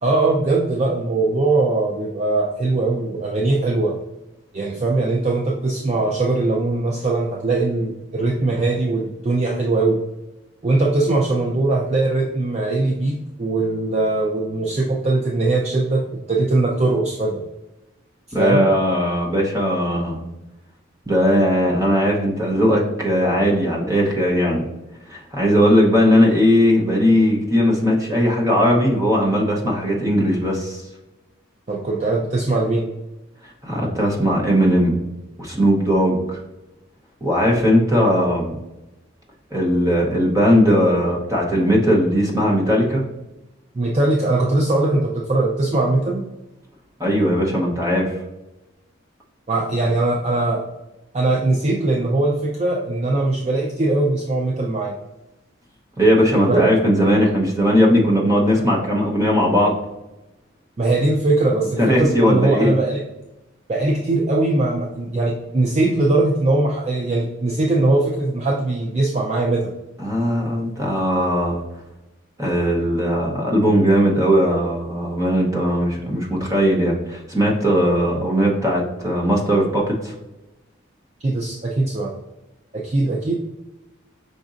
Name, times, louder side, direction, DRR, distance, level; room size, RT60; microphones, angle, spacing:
voice 1, 0.0-3.9 4.5-10.0 10.6-17.4 18.3-18.6 31.7-32.9 43.7-46.2 49.5-50.6 51.1-55.0 56.5-56.7 60.8-63.0 63.7-69.7 81.2-82.1 82.7-83.3, right 2 dB, 30° right, -1 dB, 0.4 m, -20 dB
voice 2, 18.3-20.3 21.1-24.6 25.1-30.8 33.6-35.0 35.4-36.4 37.2-38.5 39.5-43.0 47.0-48.2 56.0-59.7 61.8-62.7 70.0-71.6 72.4-80.1, equal, 15° right, -2 dB, 0.8 m, -18 dB
5.1 x 3.9 x 2.5 m, 0.99 s
head